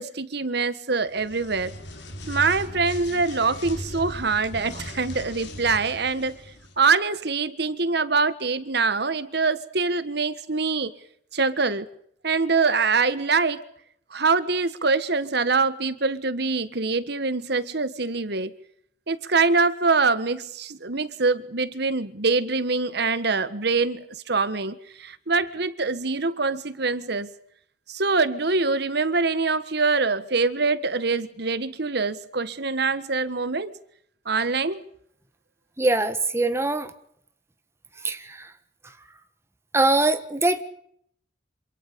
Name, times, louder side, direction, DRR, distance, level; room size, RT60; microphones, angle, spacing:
voice 1, 0.0-1.7 2.3-6.4 6.8-10.9 11.3-11.9 12.2-13.6 14.1-18.5 19.1-27.3 27.9-33.7 34.2-34.8, right 4 dB, 60° right, 1.5 m, -24 dB
sound 1, 1.1-6.8, left 1 dB, 65° left, 4.3 m, -38 dB
voice 2, 35.8-36.9 38.0-38.5 39.7-40.6, right 2 dB, 15° right, 1.7 m, -22 dB
27.5 x 27.0 x 5.4 m
head